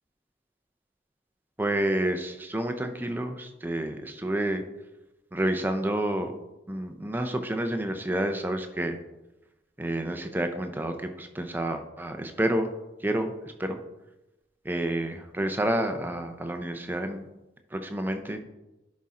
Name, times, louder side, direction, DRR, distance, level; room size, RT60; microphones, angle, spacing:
voice 1, 1.6-4.6 5.3-6.3 6.7-9.0 9.8-12.7 13.0-13.3 13.6-13.8 14.7-17.2 17.7-18.4, right 1 dB, 10° right, 6 dB, 0.5 m, -29 dB
10.5 x 4.2 x 3.7 m, 1.0 s
head